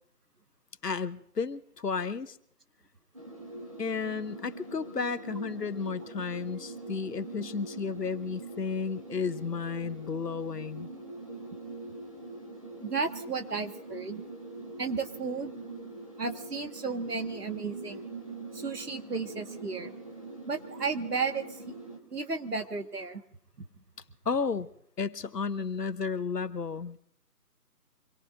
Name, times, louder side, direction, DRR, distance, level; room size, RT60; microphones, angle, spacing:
voice 1, 0.8-2.4 3.8-10.9 24.2-24.7 25.0-27.0, left 5 dB, 85° left, 13 dB, 1.0 m, -33 dB
sound 1, 3.1-22.0, right 2 dB, 20° right, 1.4 m, -43 dB
voice 2, 12.8-14.2 14.8-15.6 16.2-18.0 18.5-20.0 20.5-21.7 22.1-23.2 23.6-23.7, right 4 dB, 75° right, 7 dB, 1.7 m, -33 dB
25.0 x 22.0 x 2.6 m, 0.68 s
figure-of-eight pair, 175°, 47 cm